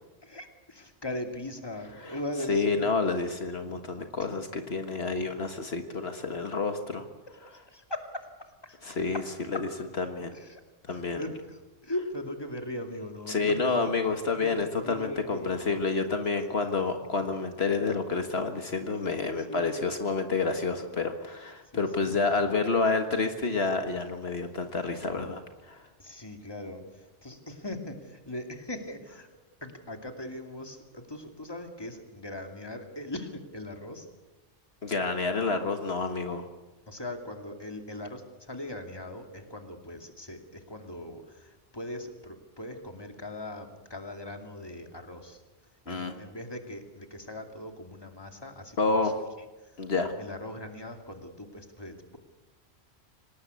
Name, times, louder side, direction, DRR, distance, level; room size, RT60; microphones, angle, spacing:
voice 1, 0.2-2.9 7.5-8.8 9.1-9.2 9.5-9.6 10.3-10.6 10.9-13.9 14.4-15.6 18.9-19.0 19.4-19.8 21.7-22.2 26.0-29.3 29.6-34.1 36.9-45.4 45.9-49.1 49.4-49.8 50.2-52.2, left 1 dB, 20° left, 4 dB, 2.6 m, -40 dB
voice 2, 2.5-7.1 8.8-9.2 10.0-10.3 10.9-11.2 13.3-25.9 34.8-36.5 45.9-46.1 48.8-49.2 49.8-50.1, left 4 dB, 65° left, 6 dB, 1.8 m, -29 dB
26.0 x 19.0 x 8.4 m, 1.1 s
omnidirectional pair, 1.1 m